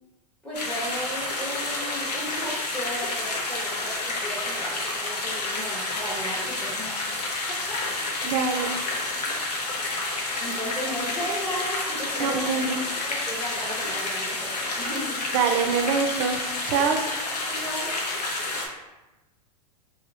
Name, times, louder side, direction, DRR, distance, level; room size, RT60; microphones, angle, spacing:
voice 1, 0.4-7.2 7.5-8.2 10.4-12.6 13.0-15.2 17.4-17.9, equal, 5° left, -8 dB, 0.6 m, -35 dB
sound 1, 0.5-18.7, left 2 dB, 80° left, 0.7 m, -29 dB
voice 2, 8.2-8.8 12.2-12.8 15.3-16.4 16.6-17.0, right 6 dB, 45° right, 5 dB, 0.4 m, -24 dB
2.8 x 2.7 x 2.6 m, 1.0 s
hypercardioid pair, 100°, 21 cm